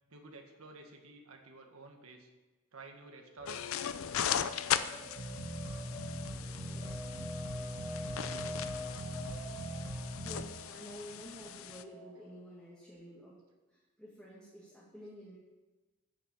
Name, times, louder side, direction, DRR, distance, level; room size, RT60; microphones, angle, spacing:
voice 1, 0.1-2.3 2.7-3.8 4.1-5.3 6.0-6.1 7.9-8.1 9.5-9.6, right 3 dB, 90° right, 3 dB, 1.6 m, -53 dB
sound 1, 3.4-12.6, left 1 dB, 15° right, 2.8 m, -47 dB
sound 2, 3.5-11.8, left 9 dB, 80° left, 0.5 m, -38 dB
Dangerous City, 5.2-10.4, equal, 65° right, 1.7 m, -41 dB
voice 2, 10.2-13.4 13.7-15.4, equal, 5° left, -9 dB, 2.1 m, -50 dB
9.5 x 6.6 x 7.5 m, 1.2 s
head